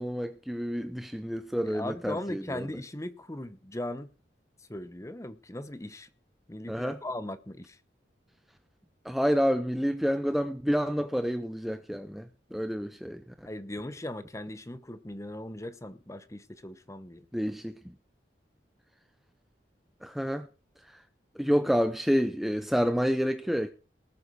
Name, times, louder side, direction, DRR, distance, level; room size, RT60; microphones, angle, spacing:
voice 1, 0.0-2.7 6.7-7.0 9.0-13.2 17.3-17.7 20.0-20.5 21.4-23.7, equal, ahead, 0.6 m, -28 dB
voice 2, 1.6-4.1 4.7-6.1 6.5-7.8 13.4-17.3, left 1 dB, 15° left, 1.0 m, -38 dB
19.5 x 8.3 x 4.7 m
head